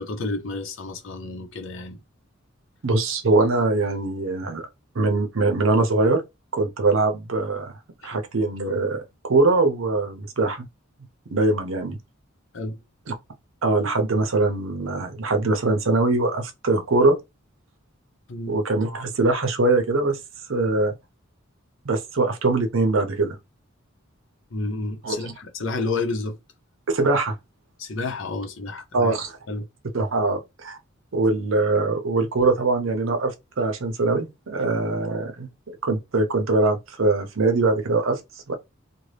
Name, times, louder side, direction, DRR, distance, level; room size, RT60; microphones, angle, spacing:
voice 1, 0.0-2.0 8.0-8.2 12.5-12.8 18.3-18.6 24.5-26.4 27.8-29.2 29.5-29.7, left 3 dB, 65° left, 0.7 m, -30 dB
voice 2, 2.8-4.7 4.9-6.2 6.5-7.7 8.0-10.7 11.3-12.0 13.6-17.2 18.5-20.2 20.5-20.9 21.8-23.4 25.0-25.3 26.9-27.4 28.9-29.3 29.9-30.8 31.1-35.5 35.8-38.2 38.5-38.6, right 3 dB, 70° right, 0.7 m, -22 dB
2.6 x 2.1 x 3.2 m
head